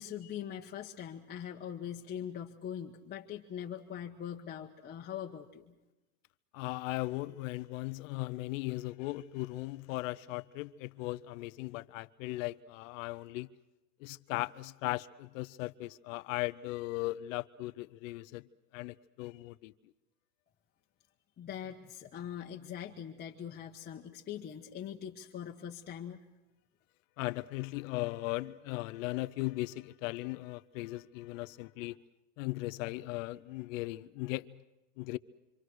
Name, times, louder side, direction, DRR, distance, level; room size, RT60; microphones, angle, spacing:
voice 1, 0.0-5.7 21.4-26.2, left 9 dB, 20° left, 1.3 m, -42 dB
voice 2, 6.5-13.5 14.0-18.5 18.7-19.7 27.2-32.0 32.4-34.6 35.0-35.2, left 20 dB, 55° left, 0.8 m, -38 dB
26.5 x 26.5 x 6.4 m
supercardioid pair, 135°, 46 cm